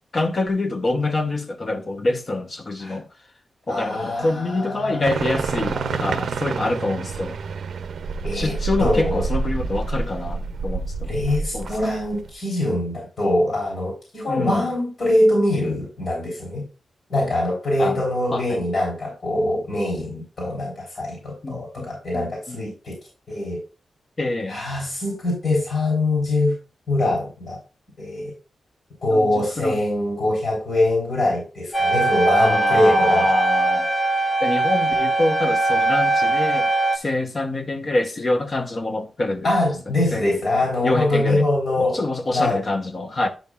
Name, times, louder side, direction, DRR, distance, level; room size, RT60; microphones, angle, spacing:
voice 1, 0.1-3.1 3.7-7.4 8.3-11.1 11.5-11.7 14.3-14.7 17.8-18.0 18.3-18.6 21.4-21.9 22.1-22.6 24.2-24.6 29.1-29.8 32.4-33.9 34.4-39.5 40.1-40.4 40.8-41.4 41.8-43.3, left 2 dB, 45° left, 1.0 m, -25 dB
voice 2, 3.7-6.1 8.2-8.5 8.8-9.2 11.1-16.6 17.1-23.0 23.3-23.6 24.5-26.5 26.9-27.6 28.0-28.3 29.0-33.3 39.4-42.0 42.3-42.6, left 1 dB, 65° left, 3.9 m, -23 dB
sound 1, 5.0-12.3, right 4 dB, 80° right, 0.5 m, -28 dB
sound 2, 31.7-37.0, right 2 dB, 20° left, 0.9 m, -21 dB
10.5 x 5.3 x 2.4 m
cardioid pair, 85°, 0 cm